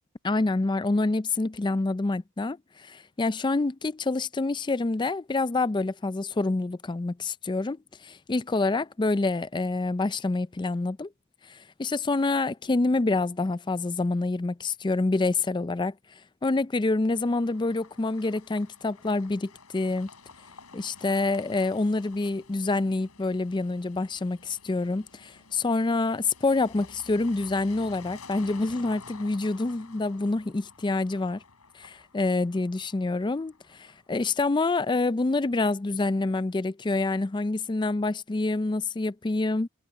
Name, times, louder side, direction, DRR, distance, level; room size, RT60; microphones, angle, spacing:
voice 1, 0.2-11.1 11.5-15.9 16.4-20.1 20.7-31.4 31.7-39.7, left 3 dB, 20° left, 0.4 m, -27 dB
sound 1, 17.1-34.1, left 4 dB, 80° left, 6.8 m, -51 dB
head